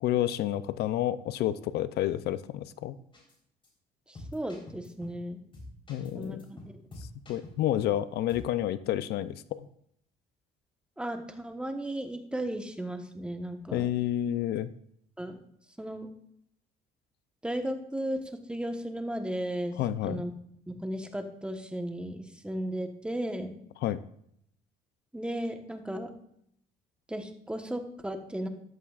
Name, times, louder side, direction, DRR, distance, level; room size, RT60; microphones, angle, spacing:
voice 1, 0.0-3.0 5.9-6.5 7.3-9.6 13.7-14.7 19.8-20.2 23.8-24.0, left 12 dB, 75° left, 14 dB, 0.5 m, -29 dB
sound 1, 3.1-3.4 3.6-3.7 4.2-5.2 5.5-8.0 8.3-8.5, left 1 dB, 30° left, 4.0 m, -47 dB
voice 2, 4.1-5.4 6.1-6.6 11.0-13.9 15.2-15.4 15.8-16.1 17.4-19.8 20.0-20.3 20.7-23.6 25.1-26.1 27.1-28.5, right 1 dB, 5° right, 5 dB, 1.2 m, -35 dB
14.0 x 11.0 x 2.5 m, 0.70 s
cardioid pair, 110°, 17 cm